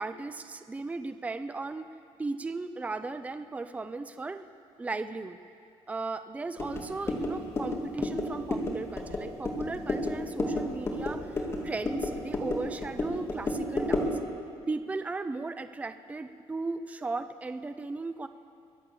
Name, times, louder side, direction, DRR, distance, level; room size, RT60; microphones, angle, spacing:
voice 1, 0.0-1.9 2.2-4.5 4.8-5.4 5.9-14.1 14.7-18.3, right 3 dB, 15° right, 10 dB, 0.5 m, -36 dB
sound 1, 6.6-14.2, left 2 dB, 25° left, 2.3 m, -32 dB
23.0 x 8.5 x 6.8 m, 2.5 s
cardioid pair, 130°, 10 cm